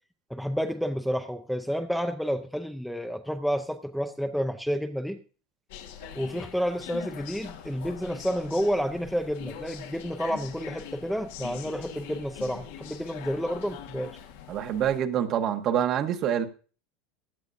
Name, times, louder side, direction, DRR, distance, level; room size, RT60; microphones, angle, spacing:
voice 1, 0.3-5.2 6.1-14.1, equal, ahead, 0.6 m, -30 dB
sound 1, 5.7-15.0, left 9 dB, 80° left, 1.5 m, -43 dB
voice 2, 14.5-16.5, right 9 dB, 40° right, 1.0 m, -26 dB
16.0 x 10.5 x 2.6 m
supercardioid pair, 150°, 0 cm